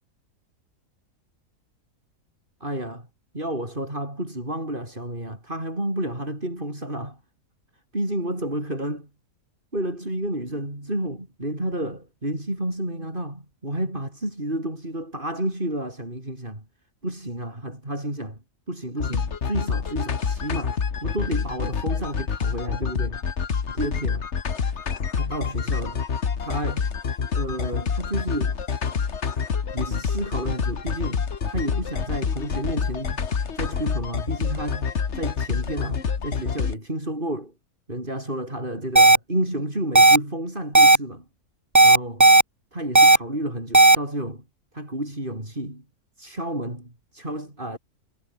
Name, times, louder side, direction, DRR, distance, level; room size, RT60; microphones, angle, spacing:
voice 1, 2.6-3.1 3.3-7.2 7.9-9.1 9.7-16.6 17.0-18.4 18.7-23.2 23.7-24.3 25.1-26.0 26.4-26.9 27.3-28.6 29.7-33.2 33.5-37.5 37.9-41.3 41.8-42.3 42.7-44.4 44.7-45.8 46.2-47.8, right 1 dB, 30° right, 8.4 m, -31 dB
sound 1, 19.0-36.7, left 6 dB, 45° left, 1.6 m, -27 dB
sound 2, 39.0-39.2 40.0-40.2 40.7-41.0 41.8-42.4 43.0-43.2 43.7-44.0, right 2 dB, 15° right, 0.7 m, -12 dB
omnidirectional pair, 1.7 m